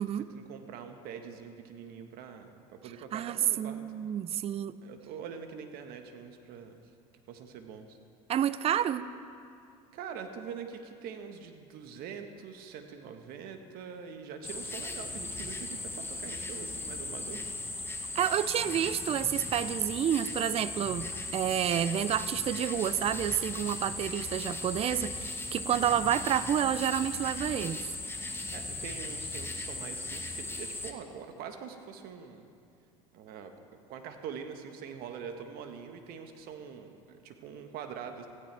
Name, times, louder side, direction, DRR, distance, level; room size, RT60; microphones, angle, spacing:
voice 1, 0.0-3.8 4.8-6.8 7.3-8.0 9.9-17.4 25.6-26.0 28.5-32.5 33.1-38.3, right 7 dB, 60° right, 6 dB, 1.4 m, -44 dB
voice 2, 3.1-4.7 8.3-9.1 18.1-21.1 21.3-27.8, right 10 dB, 35° right, 15 dB, 0.5 m, -29 dB
sound 1, 14.4-30.9, left 2 dB, 15° left, 1.3 m, -38 dB
17.0 x 15.0 x 3.5 m, 2.4 s
hypercardioid pair, 80°, 18 cm